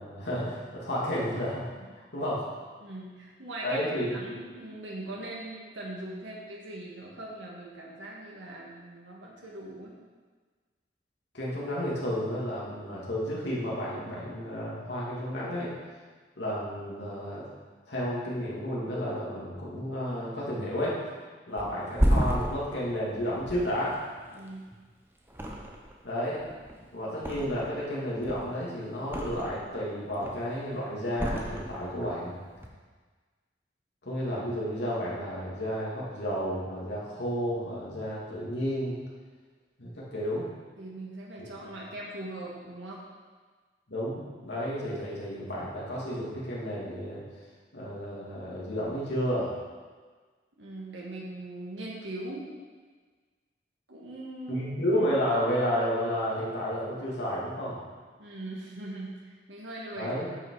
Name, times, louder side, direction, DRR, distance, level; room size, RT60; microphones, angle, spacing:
voice 1, 0.0-1.7 2.1-2.4 3.6-4.4 11.3-15.7 16.4-17.4 17.9-21.0 21.5-23.9 26.0-26.4 26.9-32.4 34.0-39.0 39.8-40.5 43.9-47.2 47.7-49.5 54.5-57.8 60.0-60.2, equal, 70° left, -7 dB, 2.5 m, -31 dB
voice 2, 2.8-9.9 24.3-24.7 40.8-43.0 50.6-52.5 53.9-54.7 58.2-60.1, right 1 dB, 85° right, -4 dB, 1.8 m, -40 dB
Thump thud, 21.6-24.8 25.3-26.1 26.3-27.8 28.1-29.7 30.1-30.6 31.1-32.1 32.5-32.7, equal, 10° right, 0.8 m, -31 dB
9.6 x 6.0 x 4.8 m, 1.4 s
head